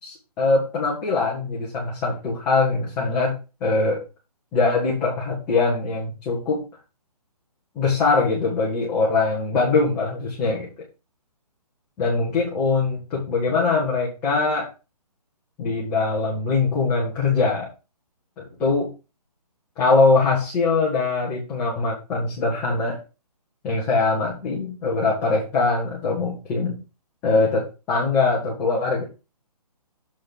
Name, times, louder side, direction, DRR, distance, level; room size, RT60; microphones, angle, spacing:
voice 1, 0.0-4.0 4.5-6.6 7.8-10.7 12.0-14.7 15.6-17.7 18.6-18.9 19.8-23.0 23.6-26.8 27.2-29.0, left 3 dB, 5° left, -6 dB, 0.7 m, -22 dB
7.0 x 6.3 x 3.7 m, 0.30 s
hypercardioid pair, 175°, 21 cm